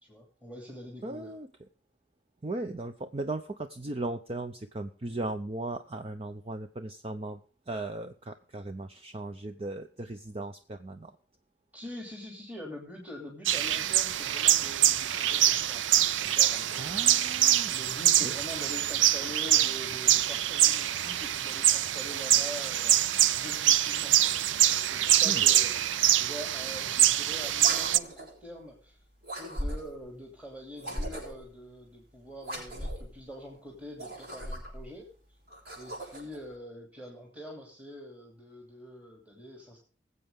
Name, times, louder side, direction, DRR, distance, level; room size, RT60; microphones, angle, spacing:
voice 1, 0.0-1.3 11.7-16.8 17.7-29.0 29.4-35.1 35.8-39.8, left 1 dB, 10° right, -1 dB, 2.8 m, -45 dB
voice 2, 1.0-1.7 2.4-7.4 7.7-11.1 16.8-17.8 18.2-18.3 25.2-25.4, right 2 dB, 30° right, 8 dB, 0.6 m, -37 dB
sound 1, 13.5-28.0, right 12 dB, 80° right, 0.5 m, -25 dB
sound 2, 27.5-28.4 29.2-30.0 30.8-31.5 32.4-33.1 33.9-34.8 35.5-36.4, equal, 55° right, 7.2 m, -38 dB
20.5 x 8.0 x 3.6 m, 0.40 s
head